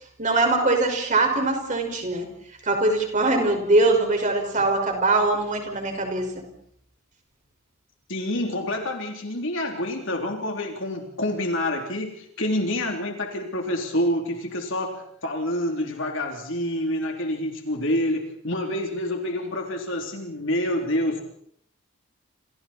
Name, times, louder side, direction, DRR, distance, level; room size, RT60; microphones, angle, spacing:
voice 1, 0.2-2.3 2.6-6.4, right 2 dB, 35° right, 3 dB, 5.7 m, -22 dB
voice 2, 8.1-21.2, left 1 dB, 60° left, 2 dB, 3.5 m, -27 dB
28.5 x 28.5 x 4.5 m, 0.67 s
head